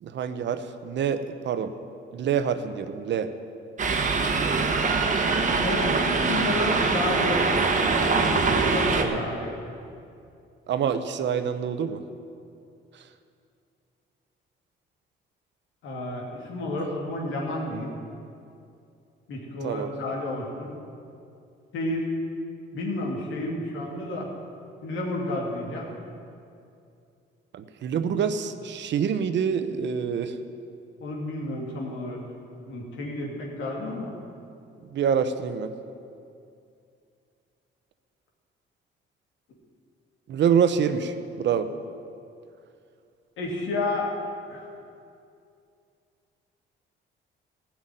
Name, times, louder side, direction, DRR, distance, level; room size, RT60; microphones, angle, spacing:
voice 1, 0.0-1.7 2.1-3.3 9.0-9.2 10.7-12.0 12.9-13.0 19.6-19.9 27.5-30.4 34.9-35.7 40.3-41.7, right 7 dB, 65° right, 10 dB, 0.9 m, -26 dB
sound 1, 3.8-9.0, right 4 dB, 40° right, 1.3 m, -23 dB
voice 2, 5.6-7.5 8.3-9.5 15.8-17.9 19.3-20.7 21.7-22.1 22.7-24.3 24.8-25.9 31.0-32.2 32.7-34.1 43.4-44.1 44.5-44.7, left 2 dB, 85° left, -1 dB, 2.6 m, -31 dB
15.5 x 6.0 x 9.1 m, 2.5 s
cardioid pair, 90°, 20 cm